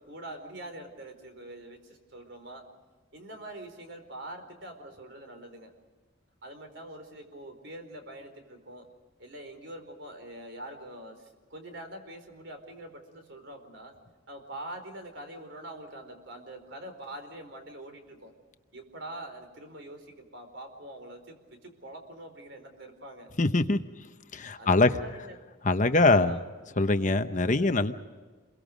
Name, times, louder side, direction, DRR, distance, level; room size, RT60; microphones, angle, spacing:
voice 1, 0.0-2.6 3.1-5.7 6.4-8.8 9.2-13.9 14.3-18.3 18.7-23.3 24.6-25.4 25.9-26.5 26.8-27.1, right 1 dB, 60° right, 6 dB, 4.5 m, -44 dB
voice 2, 23.4-23.8 24.3-24.9 25.6-26.4 26.8-27.9, left 2 dB, 40° left, 9 dB, 1.0 m, -23 dB
29.0 x 23.0 x 5.2 m, 1.4 s
head